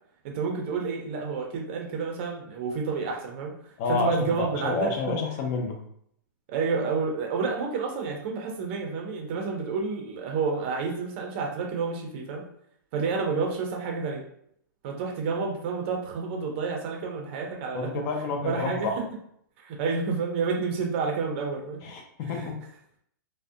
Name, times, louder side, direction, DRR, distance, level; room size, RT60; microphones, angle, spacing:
voice 1, 0.2-5.2 6.5-12.4 12.9-14.2 14.8-17.9 18.4-18.9 19.6-21.8 22.3-22.4, right 4 dB, 35° right, 1 dB, 0.5 m, -29 dB
voice 2, 3.8-5.8 17.7-19.0 21.8-22.6, left 3 dB, 25° left, 2 dB, 0.4 m, -29 dB
2.4 x 2.1 x 2.6 m, 0.69 s
hypercardioid pair, 165°, 11 cm